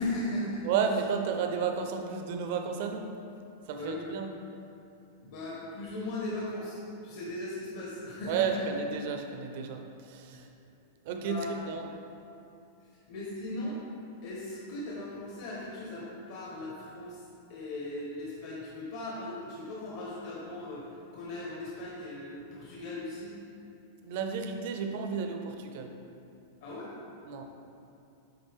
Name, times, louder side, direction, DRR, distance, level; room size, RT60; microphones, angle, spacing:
voice 1, 0.0-0.6 3.7-4.0 5.2-8.6 11.2-11.6 13.1-13.8 14.2-17.2 17.5-20.8 21.1-23.3 26.6-26.9, left 2 dB, 55° left, -6 dB, 1.2 m, -38 dB
voice 2, 0.6-3.1 3.7-4.3 8.3-10.5 11.0-11.9 24.0-25.9 27.2-27.5, right 6 dB, 45° right, 4 dB, 0.5 m, -32 dB
9.6 x 3.8 x 3.6 m, 2.7 s
supercardioid pair, 175°, 0 cm